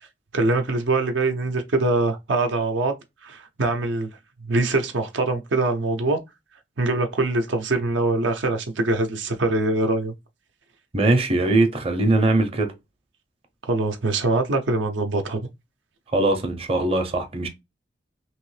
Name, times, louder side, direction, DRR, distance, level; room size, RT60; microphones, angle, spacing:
voice 1, 0.3-2.9 3.2-4.1 4.4-6.2 6.8-10.1 13.6-15.4, right 2 dB, 75° right, 0.6 m, -23 dB
voice 2, 10.9-12.7 16.1-17.5, right 2 dB, 30° right, 0.6 m, -21 dB
3.0 x 2.8 x 3.1 m
head